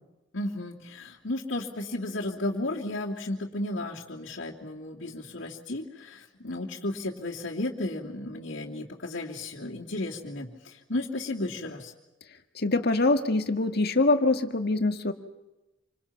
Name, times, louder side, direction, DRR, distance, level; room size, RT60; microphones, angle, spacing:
voice 1, 0.3-11.9, left 2 dB, 75° left, -5 dB, 3.0 m, -34 dB
voice 2, 12.6-15.1, left 2 dB, 55° left, 7 dB, 1.9 m, -24 dB
28.0 x 26.5 x 6.0 m, 1.0 s
head